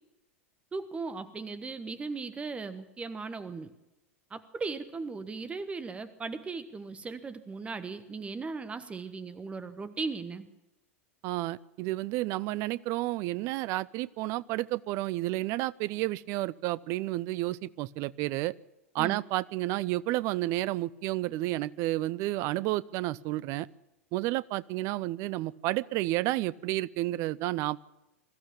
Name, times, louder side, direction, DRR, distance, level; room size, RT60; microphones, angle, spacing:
voice 1, 0.7-3.7 4.3-10.5 19.0-19.2, right 4 dB, 15° right, 12 dB, 1.3 m, -37 dB
voice 2, 11.2-18.5 18.9-23.7 24.1-27.8, right 17 dB, 40° right, 20 dB, 0.7 m, -31 dB
22.0 x 14.0 x 8.7 m, 0.97 s
figure-of-eight pair, 90°, 7 cm